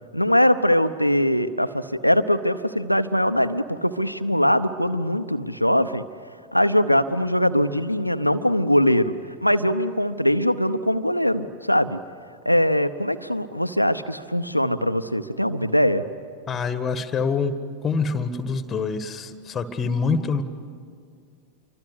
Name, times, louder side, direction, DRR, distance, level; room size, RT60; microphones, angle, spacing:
voice 1, 0.1-6.0 6.5-9.1 9.4-12.0 12.4-16.0, equal, 90° left, 9 dB, 0.8 m, -21 dB
voice 2, 16.5-20.4, left 5 dB, 20° left, 11 dB, 1.7 m, -26 dB
28.0 x 24.0 x 8.2 m, 2.2 s
figure-of-eight pair, 90°, 0 cm